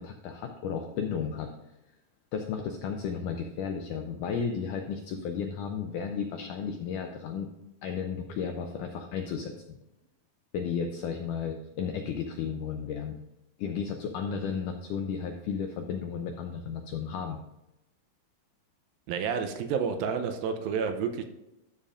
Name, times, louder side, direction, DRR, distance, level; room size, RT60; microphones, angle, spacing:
voice 1, 0.0-1.5 2.3-7.5 7.8-9.8 10.5-13.1 13.6-17.4, left 6 dB, 90° left, 4 dB, 1.8 m, -33 dB
voice 2, 19.1-21.2, right 6 dB, 80° right, 7 dB, 2.4 m, -30 dB
12.5 x 6.7 x 2.5 m, 0.91 s
omnidirectional pair, 4.4 m